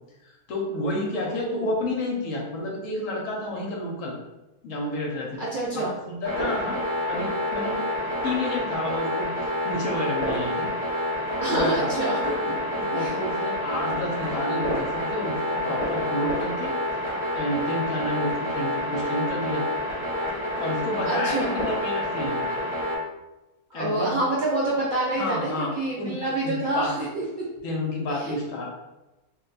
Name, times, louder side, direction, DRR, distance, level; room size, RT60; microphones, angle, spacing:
voice 1, 0.2-4.2 4.6-5.4 5.7-6.8 7.1-7.9 8.2-10.7 11.4-11.9 12.7-16.7 17.3-19.7 20.6-22.4 23.7-24.2 25.2-25.7 26.0-27.1 27.6-28.7, left 1 dB, 65° left, -1 dB, 0.9 m, -30 dB
voice 2, 1.3-1.7 5.4-5.9 11.4-12.2 12.9-13.1 21.0-21.5 23.7-27.2 28.1-28.4, right 2 dB, 85° right, -6 dB, 0.4 m, -27 dB
sound 1, 6.2-23.0, left 1 dB, 25° left, 0.7 m, -28 dB
2.7 x 2.2 x 3.9 m, 1.0 s
omnidirectional pair, 1.7 m